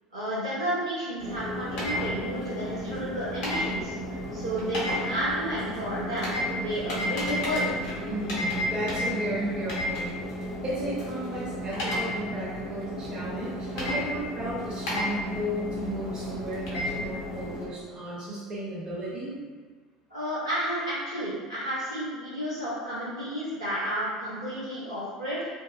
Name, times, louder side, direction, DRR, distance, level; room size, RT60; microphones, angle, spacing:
voice 1, 0.1-3.9 4.3-7.8 20.1-25.5, equal, 90° right, -12 dB, 0.8 m, -31 dB
sound 1, 1.2-17.6, left 1 dB, 65° left, 0.7 m, -32 dB
voice 2, 8.1-10.1 10.6-19.6, right 1 dB, 35° right, -7 dB, 0.9 m, -34 dB
2.6 x 2.0 x 2.4 m, 1.5 s
figure-of-eight pair, 70°, 3 cm